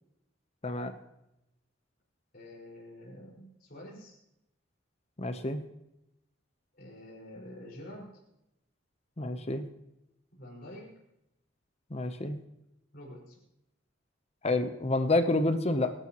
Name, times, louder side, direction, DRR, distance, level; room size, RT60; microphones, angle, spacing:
voice 1, 2.3-4.1 6.8-8.1 10.4-10.9 12.9-13.4, left 1 dB, 50° left, -4 dB, 5.3 m, -47 dB
voice 2, 5.2-5.6 9.2-9.6 11.9-12.4 14.4-15.9, left 2 dB, 35° left, 9 dB, 0.8 m, -28 dB
24.5 x 12.0 x 3.1 m, 0.86 s
head